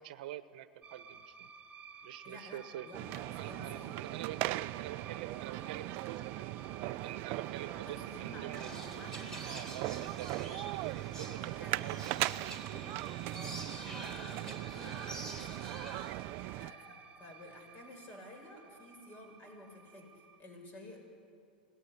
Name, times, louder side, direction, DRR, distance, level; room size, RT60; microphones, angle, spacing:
voice 1, 0.0-1.5 2.0-2.9 3.3-8.7 9.4-12.4 16.3-16.6, right 13 dB, 60° right, 13 dB, 1.1 m, -46 dB
sound 1, 0.8-20.4, right 6 dB, 25° right, 1.4 m, -53 dB
voice 2, 2.2-4.2 7.8-9.8 10.0-10.7 11.1-12.0 13.3-15.8 16.6-21.0, left 1 dB, 35° left, 3 dB, 7.5 m, -52 dB
sound 2, 2.9-16.7, right 18 dB, 45° right, 0.5 m, -39 dB
sound 3, 8.5-16.1, right 1 dB, 10° left, 3.8 m, -48 dB
26.5 x 19.5 x 9.9 m, 2.4 s
hypercardioid pair, 105°, 5 cm